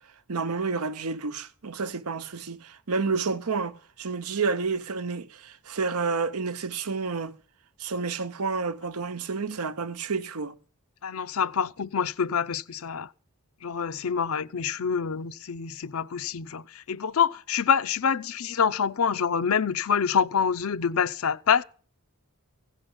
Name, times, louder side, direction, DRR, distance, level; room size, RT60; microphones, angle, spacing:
voice 1, 0.3-7.4 7.8-10.6, right 4 dB, 80° right, 0.9 m, -30 dB
voice 2, 11.0-13.1 13.6-21.6, left 7 dB, 70° left, 0.6 m, -26 dB
16.0 x 5.8 x 7.9 m
head